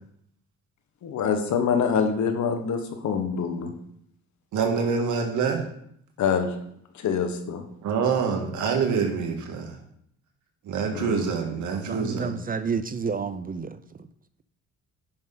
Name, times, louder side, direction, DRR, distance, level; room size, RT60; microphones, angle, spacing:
voice 1, 1.0-3.7 6.2-6.5 6.9-7.6 10.9-11.3, left 6 dB, 70° left, 7 dB, 1.3 m, -25 dB
voice 2, 4.5-5.6 7.8-9.7 10.7-12.3, right 5 dB, 75° right, 3 dB, 1.7 m, -26 dB
voice 3, 11.9-13.8, right 5 dB, 30° right, 13 dB, 0.5 m, -29 dB
10.5 x 5.6 x 3.9 m, 0.70 s
cardioid pair, 90°, 30 cm